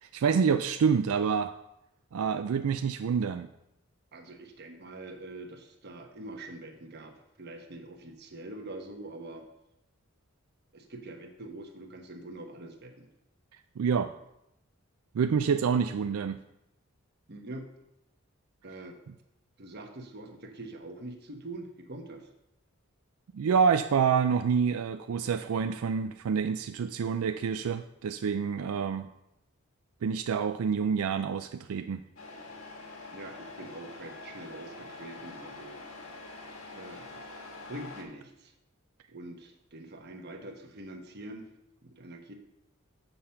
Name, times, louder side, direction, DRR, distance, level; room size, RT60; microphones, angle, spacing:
voice 1, 0.0-1.5 2.1-3.5 13.8-14.1 15.1-16.4 23.3-29.1 30.0-32.0, right 6 dB, 85° right, 9 dB, 0.4 m, -27 dB
voice 2, 4.1-9.5 10.7-13.1 17.3-17.7 18.6-19.0 19.6-22.3 33.1-35.8 36.7-37.2 37.7-38.5 39.1-41.5 41.8-42.3, right 2 dB, 50° right, 5 dB, 1.1 m, -44 dB
Truck, 32.2-38.0, left 3 dB, 80° left, 1.4 m, -45 dB
6.9 x 5.6 x 5.7 m, 0.85 s
head